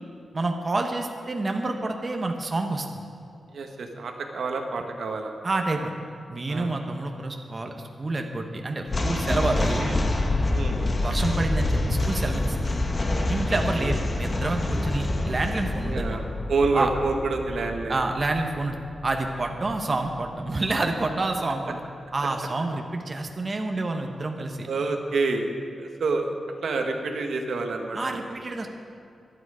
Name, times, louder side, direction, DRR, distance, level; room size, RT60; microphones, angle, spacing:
voice 1, 0.3-3.0 5.4-5.9 6.3-9.9 11.0-12.6 13.3-16.2 16.7-16.9 17.9-18.8 19.0-21.8 22.1-24.7 27.9-28.7, right 2 dB, 35° right, 3 dB, 1.1 m, -28 dB
voice 2, 3.5-5.3 6.5-6.7 9.8-10.0 10.5-10.8 13.5-13.9 15.8-18.0 24.7-25.5 25.8-26.3 26.6-28.2, right 3 dB, 75° right, 3 dB, 1.5 m, -28 dB
sound 1, 8.9-20.2, left 2 dB, 30° left, 1.4 m, -27 dB
24.0 x 9.2 x 5.0 m, 2.5 s
wide cardioid pair, 120°, 0 cm